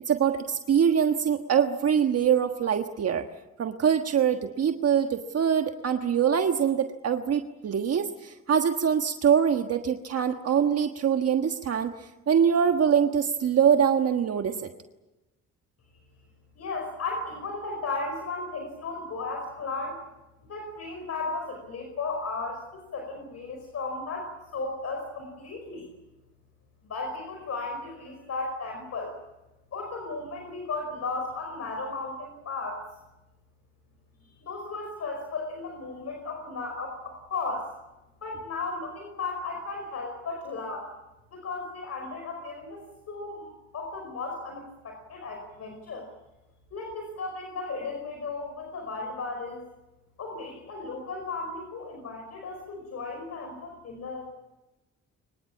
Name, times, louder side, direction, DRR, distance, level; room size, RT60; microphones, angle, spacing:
voice 1, 0.1-3.2 3.6-11.9 12.3-14.7, right 8 dB, 55° right, 6 dB, 1.4 m, -24 dB
voice 2, 16.5-20.0 20.5-25.9 26.9-29.2 29.7-32.8 34.2-37.7 38.2-40.9 41.3-46.1 46.7-49.6 50.2-54.3, left 3 dB, 55° left, 3 dB, 5.1 m, -35 dB
24.0 x 22.5 x 8.5 m, 1.0 s
cardioid pair, 90°, 30 cm